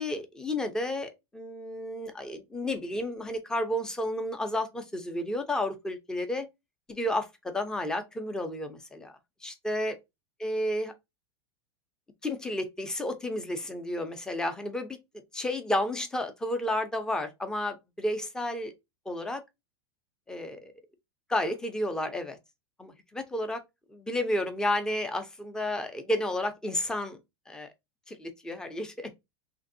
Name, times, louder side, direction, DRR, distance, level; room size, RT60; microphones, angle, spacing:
voice 1, 0.0-6.5 6.9-9.1 9.4-10.0 10.4-10.9 12.2-15.0 15.3-18.7 19.1-19.4 20.3-20.7 21.3-22.4 22.8-23.6 23.9-27.2 27.5-27.7 28.1-29.1, left 1 dB, 5° left, 0.4 m, -31 dB
3.2 x 2.6 x 2.5 m
supercardioid pair, 155°, 14 cm